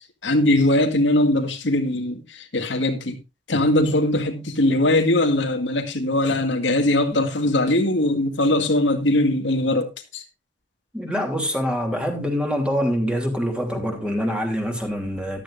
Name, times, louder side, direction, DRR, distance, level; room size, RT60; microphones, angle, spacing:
voice 1, 0.2-3.2 3.5-10.2, left 1 dB, 85° left, 2.0 m, -21 dB
voice 2, 10.9-15.4, equal, 5° right, 3.0 m, -25 dB
14.0 x 12.5 x 2.5 m
head